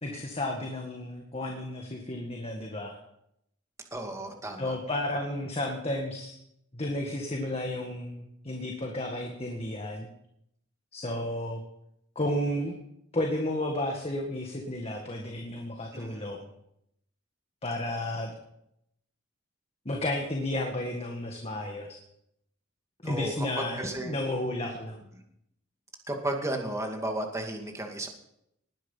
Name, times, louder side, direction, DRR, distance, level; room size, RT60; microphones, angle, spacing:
voice 1, 0.0-3.0 4.6-6.4 6.7-10.1 10.9-11.6 12.2-12.8 13.1-16.5 17.6-18.3 19.9-22.0 23.0-25.0, left 1 dB, 30° left, 1 dB, 1.9 m, -32 dB
voice 2, 3.9-4.8 15.9-16.3 23.0-23.5 23.8-24.1 26.1-28.1, right 1 dB, 15° right, 3 dB, 2.3 m, -34 dB
19.5 x 10.5 x 5.8 m, 0.78 s
head